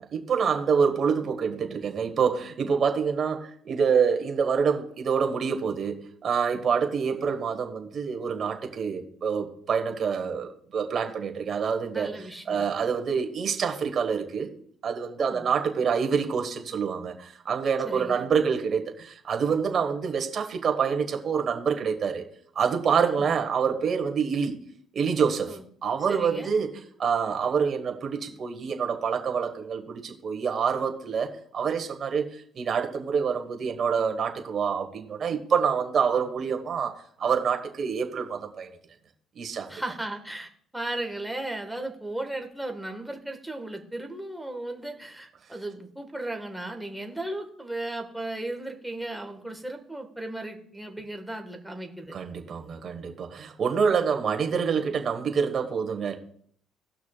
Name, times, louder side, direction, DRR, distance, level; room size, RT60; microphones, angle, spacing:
voice 1, 0.0-14.5 14.8-22.2 22.5-24.6 24.9-26.7 27.0-32.3 32.5-36.9 37.2-38.7 39.3-39.7 52.1-56.1, right 6 dB, 50° right, 4 dB, 1.5 m, -26 dB
voice 2, 11.9-12.7 15.2-15.4 17.9-18.2 23.0-23.4 25.5-25.6 26.1-26.5 39.7-52.1, right 1 dB, 5° right, 4 dB, 1.6 m, -36 dB
18.0 x 6.0 x 2.4 m, 0.62 s
supercardioid pair, 85°, 0 cm